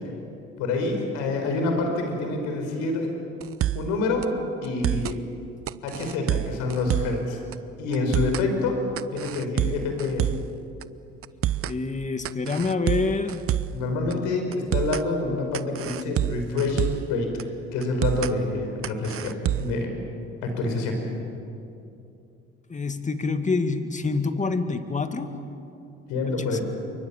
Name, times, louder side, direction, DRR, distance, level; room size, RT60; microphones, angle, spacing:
voice 1, 0.6-3.1 3.7-4.3 4.6-5.2 5.8-7.4 7.8-8.8 9.1-10.3 13.7-16.8 17.1-19.9 20.4-21.0 26.1-26.6, left 3 dB, 80° left, 4 dB, 5.4 m, -27 dB
sound 1, 3.4-3.9 4.2-4.3 4.6-5.2 5.7-7.2 7.5-7.6 7.9-8.5 9.0-10.5 10.8-10.9 11.2-11.8 12.2-13.8 14.1-14.2 14.5-15.1 15.5-17.1 17.4-17.5 17.8-18.3 18.8-19.8, right 12 dB, 50° right, 0.7 m, -27 dB
voice 2, 11.7-13.4 22.7-25.4 26.3-26.6, left 4 dB, 25° left, 8 dB, 2.2 m, -27 dB
28.5 x 24.0 x 7.3 m, 2.6 s
supercardioid pair, 70°, 29 cm